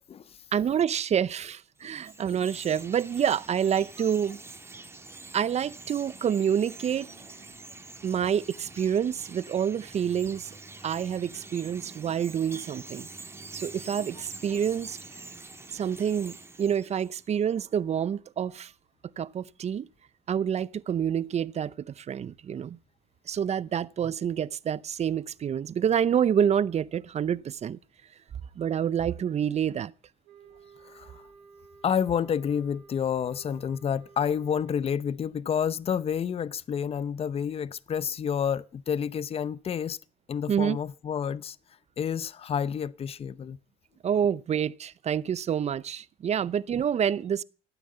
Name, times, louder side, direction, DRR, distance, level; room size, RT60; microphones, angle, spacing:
voice 1, 0.5-4.4 5.3-7.1 8.0-10.6 10.8-13.1 13.5-15.0 15.7-18.7 19.2-19.9 20.3-22.8 23.3-27.8 28.6-29.9 40.5-40.8 44.0-47.4, right 8 dB, 40° right, 0.7 m, -27 dB
Chirp tweet, 1.8-17.4, right 3 dB, 15° right, 2.2 m, -46 dB
sound 1, 30.2-35.1, right 5 dB, 90° right, 3.0 m, -54 dB
voice 2, 30.8-31.2 31.8-40.0 40.3-41.6 42.0-43.6, left 8 dB, 35° left, 0.7 m, -29 dB
16.0 x 9.4 x 7.9 m
cardioid pair, 110°, 17 cm